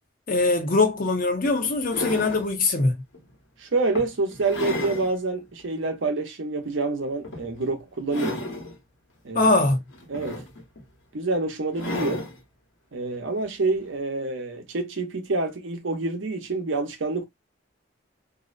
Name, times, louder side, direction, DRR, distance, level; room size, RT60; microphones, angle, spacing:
voice 1, 0.3-2.9 9.3-9.8, left 3 dB, 45° left, 0.6 m, -22 dB
sound 1, 0.7-0.8 1.4-2.5 3.1-3.3 3.9-5.1 5.6-5.7 7.2-7.6 8.0-8.7 9.9-10.8 11.7-12.4 13.7-13.8, left 1 dB, 75° left, 1.0 m, -33 dB
voice 2, 3.6-8.5 9.2-9.5 10.1-10.4 11.1-12.2 12.9-17.2, right 3 dB, 80° right, 0.7 m, -27 dB
2.6 x 2.0 x 2.4 m
head